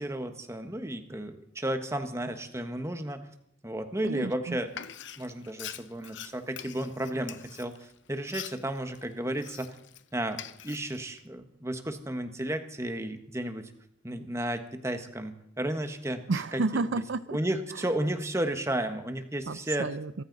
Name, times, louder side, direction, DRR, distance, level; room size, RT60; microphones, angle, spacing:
voice 1, 0.0-3.2 3.6-4.7 5.2-9.8 10.1-13.7 14.0-16.2 16.5-16.6 17.3-19.9, right 1 dB, 15° right, 7 dB, 1.3 m, -33 dB
voice 2, 4.0-4.6 16.3-17.4 19.5-20.2, right 3 dB, 75° right, 15 dB, 0.6 m, -31 dB
Frying (food), 4.7-10.0 10.3-11.2, left 10 dB, 70° left, 0.8 m, -44 dB
24.0 x 14.0 x 4.1 m, 0.71 s
head